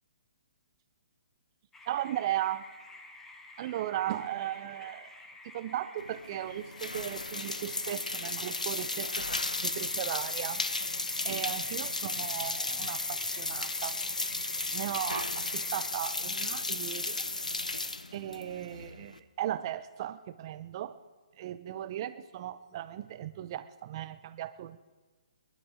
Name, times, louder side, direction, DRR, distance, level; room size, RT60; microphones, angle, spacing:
sound 1, 1.7-15.9, left 2 dB, 10° left, 1.1 m, -51 dB
voice 1, 1.9-2.6 3.6-5.1 5.5-10.6 11.2-14.0 14.7-17.2 18.1-20.9 21.4-24.8, right 12 dB, 40° right, 13 dB, 0.6 m, -37 dB
sound 2, 6.0-19.2, left 2 dB, 85° left, 0.8 m, -34 dB
26.0 x 11.5 x 3.7 m, 1.3 s
figure-of-eight pair, 130°, 4 cm